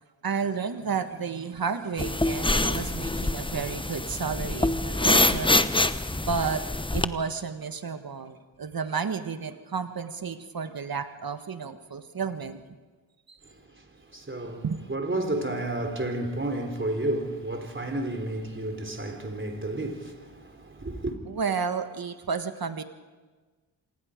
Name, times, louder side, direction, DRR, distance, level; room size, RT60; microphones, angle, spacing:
voice 1, 0.2-5.6 6.1-12.8 13.3-13.4 14.6-14.8 21.3-22.8, right 5 dB, 50° right, 1.5 m, -32 dB
sound 1, 2.0-7.0, left 2 dB, 10° left, 0.9 m, -25 dB
voice 2, 13.4-21.1, right 1 dB, 25° right, 3.6 m, -32 dB
26.5 x 20.0 x 5.1 m
cardioid pair, 55°, 44 cm